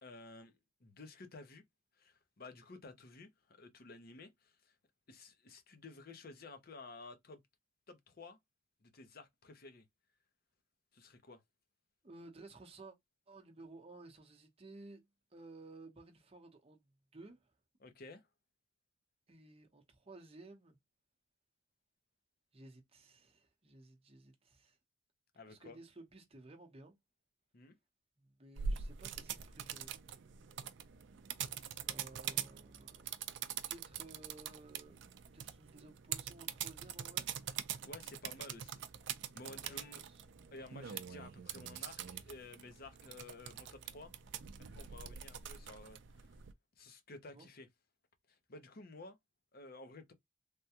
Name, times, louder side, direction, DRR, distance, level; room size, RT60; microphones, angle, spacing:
voice 1, 0.0-1.6 2.0-4.7 5.1-7.4 7.9-8.4 8.8-9.8 10.9-11.4 17.8-18.3 25.3-25.8 27.5-27.7 37.8-38.8 39.3-40.1 40.5-44.1 44.7-46.4 46.8-47.7 48.3-49.2 49.5-50.1, left 3 dB, 45° left, 0.7 m, -53 dB
voice 2, 12.0-13.0 13.3-15.0 15.3-17.5 19.3-20.8 22.5-24.8 25.5-26.9 28.2-29.9 31.8-33.1 33.7-35.0 35.3-37.3 39.6-40.2 47.3-47.5, right 2 dB, 30° right, 0.8 m, -56 dB
sound 1, 28.6-46.5, right 8 dB, 60° right, 0.4 m, -44 dB
3.4 x 2.2 x 2.8 m
head